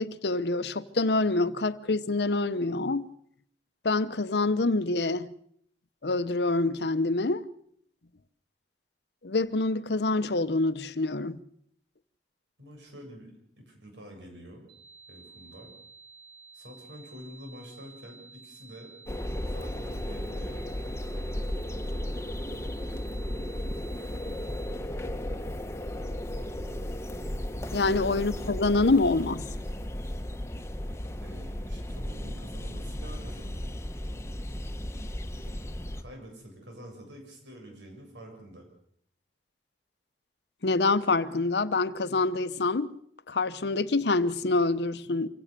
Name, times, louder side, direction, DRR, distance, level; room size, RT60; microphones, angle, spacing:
voice 1, 0.0-3.1 3.8-5.3 6.0-7.5 9.2-11.4 27.7-29.4 40.6-42.9 43.3-45.3, left 3 dB, 70° left, 0.8 m, -26 dB
voice 2, 12.6-14.7 15.1-15.8 16.5-18.9 19.5-20.6 28.1-28.5 31.2-33.7 35.5-35.6 36.0-38.6, equal, 90° right, 7.6 m, -47 dB
sound 1, 14.7-24.7, right 4 dB, 70° right, 7.2 m, -52 dB
sound 2, 19.1-36.0, left 1 dB, 15° left, 1.1 m, -35 dB
25.0 x 16.5 x 6.8 m
head